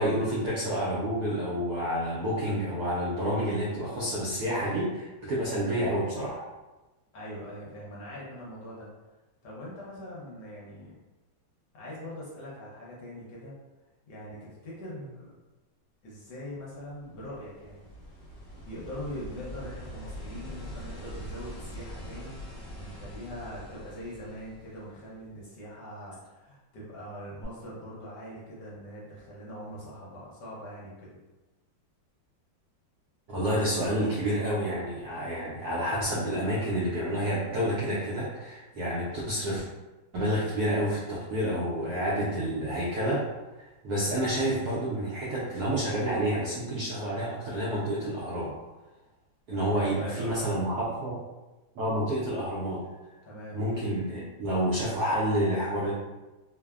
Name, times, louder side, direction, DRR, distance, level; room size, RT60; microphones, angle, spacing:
voice 1, 0.0-6.4 33.3-39.6 40.1-43.2 43.8-48.5 49.5-51.2 51.8-52.8 53.5-55.9, equal, 70° right, -7 dB, 0.9 m, -29 dB
voice 2, 7.1-8.9 9.4-11.0 11.7-13.5 14.1-15.3 16.0-17.9 18.7-31.2 49.5-50.6 53.2-53.6, equal, 65° left, -6 dB, 1.2 m, -42 dB
sound 1, 16.8-25.3 27.4-27.5, equal, 40° left, 0.8 m, -43 dB
3.2 x 2.0 x 2.3 m, 1.1 s
omnidirectional pair, 2.1 m